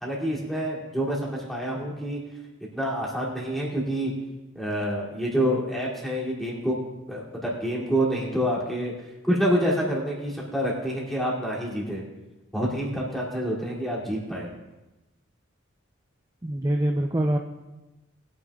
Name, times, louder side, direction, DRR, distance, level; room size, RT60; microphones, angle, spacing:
voice 1, 0.0-2.2 2.7-4.1 4.5-6.8 7.1-8.9 9.2-12.0 12.5-14.5, equal, ahead, -5 dB, 2.6 m, -27 dB
voice 2, 16.4-17.4, right 1 dB, 15° right, 3 dB, 0.5 m, -24 dB
21.0 x 9.7 x 2.4 m, 1.0 s
head